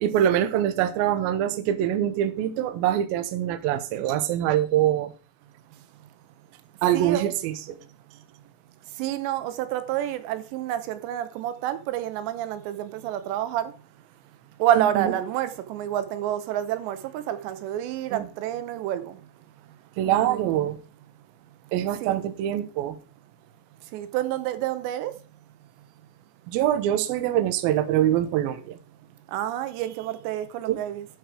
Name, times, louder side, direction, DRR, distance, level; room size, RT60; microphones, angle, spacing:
voice 1, 0.0-5.1 6.8-7.8 14.8-15.1 18.1-18.3 20.0-20.8 21.7-23.0 26.5-28.8 30.7-30.8, right 11 dB, 75° right, 2.4 m, -24 dB
voice 2, 6.9-7.3 9.0-13.7 14.6-19.2 20.0-20.7 22.0-22.3 23.9-25.1 29.3-31.1, right 12 dB, 90° right, 3.1 m, -29 dB
11.5 x 5.0 x 4.8 m
omnidirectional pair, 5.0 m